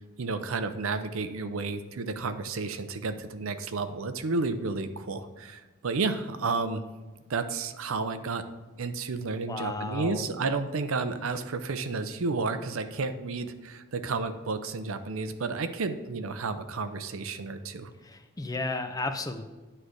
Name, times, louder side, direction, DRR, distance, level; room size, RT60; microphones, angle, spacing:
voice 1, 0.2-6.8 7.3-8.4 8.8-17.9, right 4 dB, 70° right, 10 dB, 0.5 m, -31 dB
voice 2, 9.5-10.3 18.0-19.4, left 2 dB, 15° left, 8 dB, 0.4 m, -33 dB
9.6 x 3.3 x 6.3 m, 1.2 s
head